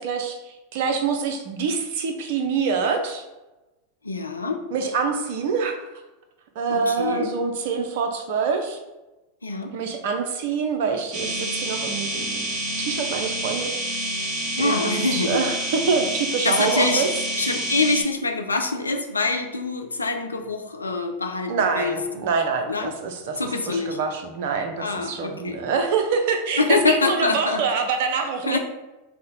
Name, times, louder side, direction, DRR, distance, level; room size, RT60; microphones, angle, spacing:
voice 1, 0.0-3.3 4.7-5.8 6.6-8.8 9.7-12.5 12.8-14.1 14.6-17.1 21.5-23.4 23.7-28.6, right 5 dB, 55° right, 4 dB, 0.6 m, -25 dB
voice 2, 4.0-4.6 6.7-7.3 9.4-9.7 14.6-15.4 16.4-17.1 17.3-22.0 22.7-22.9 23.4-24.0 24.8-25.6 26.6-27.6 28.5-28.6, left 3 dB, 85° left, 4 dB, 0.4 m, -25 dB
sound 1, 11.1-18.0, right 1 dB, 40° right, 1.1 m, -28 dB
4.1 x 2.1 x 4.0 m, 1.1 s
figure-of-eight pair, 90°, 0 cm